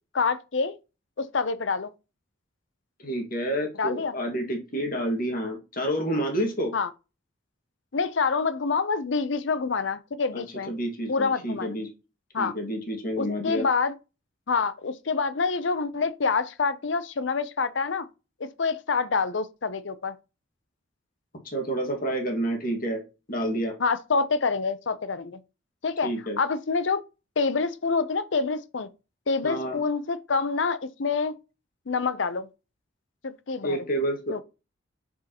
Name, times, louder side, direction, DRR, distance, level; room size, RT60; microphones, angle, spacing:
voice 1, 0.1-0.8 1.2-1.9 3.8-4.1 6.7-6.9 7.9-10.7 11.1-11.7 12.3-12.5 13.2-13.9 14.5-18.1 18.4-20.1 23.8-25.4 25.8-26.1 26.4-27.0 27.4-28.9 29.3-31.4 31.9-32.5 33.2-33.8 34.3-34.4, left 4 dB, 65° left, 0.6 m, -26 dB
voice 2, 3.0-6.7 10.3-11.9 12.4-13.7 21.4-23.0 23.3-23.7 26.0-26.4 29.4-29.8 33.6-34.4, right 1 dB, 45° left, 1.8 m, -29 dB
7.2 x 4.6 x 2.9 m
head